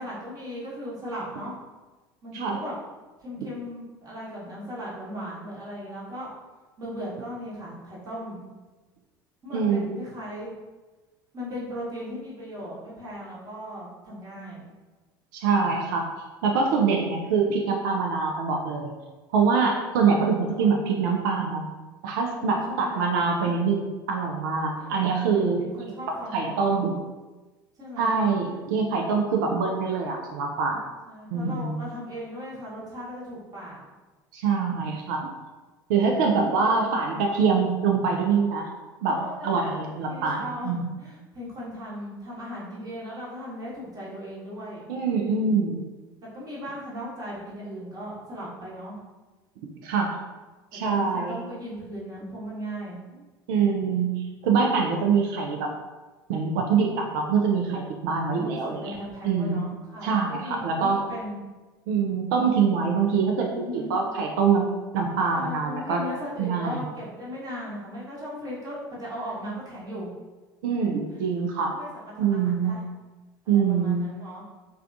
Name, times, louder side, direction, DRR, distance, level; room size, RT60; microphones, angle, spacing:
voice 1, 0.0-1.5 2.2-2.8 3.2-6.3 6.8-8.4 9.4-10.5 11.3-14.7 20.5-20.7 22.3-23.5 24.8-25.0 25.3-26.8 27.8-28.2 31.1-33.9 36.1-36.3 36.6-36.8 39.0-39.8 40.1-44.9 46.2-49.0 50.8-53.0 58.3-61.4 63.1-63.2 63.5-64.0 65.3-70.1 71.7-72.8 73.4-74.4, equal, 30° right, -6 dB, 1.1 m, -37 dB
voice 2, 9.5-10.0 15.3-16.0 16.4-18.9 19.3-21.6 22.0-23.8 24.1-25.7 26.3-26.9 28.0-30.8 31.3-31.8 34.3-35.3 35.9-38.7 39.0-39.2 39.4-40.9 44.9-45.8 49.8-50.2 50.7-51.4 53.5-55.7 56.3-58.9 59.2-59.6 60.0-61.0 61.9-66.0 66.4-66.8 70.6-71.7 72.2-72.7 73.5-74.1, right 5 dB, 60° right, 1 dB, 0.4 m, -24 dB
3.3 x 2.2 x 2.4 m, 1.2 s
figure-of-eight pair, 65°, 12 cm